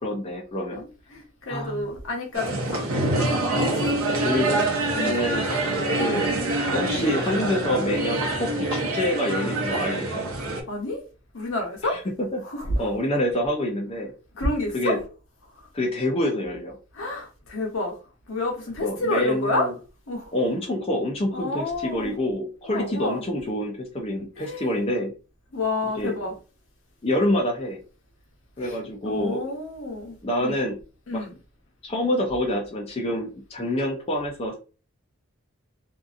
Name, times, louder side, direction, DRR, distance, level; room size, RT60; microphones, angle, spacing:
voice 1, 0.0-0.8 1.5-1.9 4.2-4.6 5.0-5.5 6.0-6.3 6.7-10.2 11.8-12.4 12.8-14.1 14.7-15.0 15.7-16.7 18.8-19.7 20.3-25.1 26.0-26.1 27.0-27.8 28.6-29.4 30.2-30.8 31.1-31.3 31.8-34.5, left 1 dB, 25° left, 0.5 m, -27 dB
voice 2, 0.7-2.9 3.8-4.1 4.9-5.3 10.7-11.0 11.3-12.0 12.4-12.7 14.3-14.9 16.9-17.9 18.3-19.7 20.1-20.3 21.3-22.1 22.7-23.2 24.4-24.7 25.5-26.3 27.2-27.3 28.6-28.8 29.0-30.2 30.5-30.6 31.1-31.3, left 2 dB, 70° left, 0.9 m, -29 dB
sound 1, 2.3-10.6, right 2 dB, 75° right, 0.7 m, -25 dB
2.7 x 2.4 x 2.4 m
head